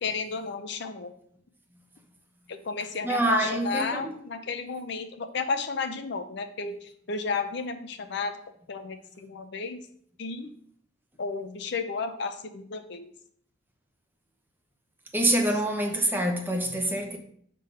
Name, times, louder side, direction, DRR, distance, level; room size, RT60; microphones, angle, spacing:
voice 1, 0.0-1.1 2.5-8.3 8.7-9.8 10.2-10.5 11.2-13.1, left 4 dB, 60° left, 0.6 m, -33 dB
voice 2, 3.0-4.1 15.1-17.2, right 1 dB, 10° right, 0.9 m, -26 dB
6.6 x 3.8 x 5.6 m
head